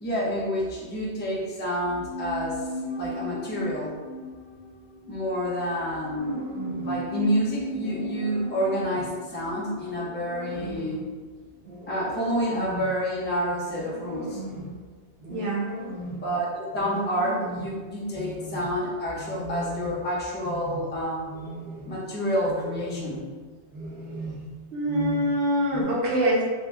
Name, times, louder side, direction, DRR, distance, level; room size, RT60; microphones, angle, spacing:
voice 1, 0.0-2.6 3.0-3.9 5.1-6.4 6.8-11.0 11.9-14.4 16.2-21.2 21.9-23.2, equal, 15° left, -5 dB, 0.4 m, -28 dB
sound 1, 1.8-11.1 11.4-11.5, equal, 75° left, 0.8 m, -37 dB
sound 2, 6.2-7.0 7.8-9.1 9.8-11.1 11.6-13.0 13.5-14.8 15.2-16.3 16.7-17.8 18.1-18.7 19.2-20.1 20.4-20.9 21.3-22.0 22.4-23.3 23.7-24.5 24.8-25.4 25.7-25.8, right 1 dB, 55° right, 0.7 m, -38 dB
voice 2, 15.3-15.7 24.7-26.4, equal, 90° right, -5 dB, 1.1 m, -24 dB
2.8 x 2.1 x 3.4 m, 1.4 s
omnidirectional pair, 1.1 m